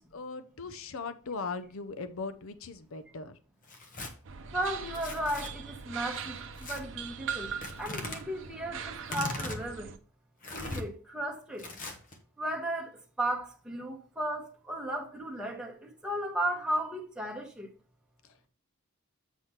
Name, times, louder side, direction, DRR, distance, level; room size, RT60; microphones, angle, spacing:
voice 1, 0.0-3.4, left 4 dB, 65° left, 0.6 m, -39 dB
Tearing, 3.6-4.1 4.9-5.5 6.6-6.8 7.6-8.2 9.0-9.6 10.4-10.8 11.6-12.2, left 2 dB, 35° left, 1.0 m, -38 dB
sound 1, 4.2-10.0, right 6 dB, 60° right, 0.7 m, -41 dB
voice 2, 4.5-7.5 7.8-9.9 10.5-11.6 12.4-17.7, right 1 dB, 5° right, 1.1 m, -35 dB
8.2 x 3.2 x 5.7 m
head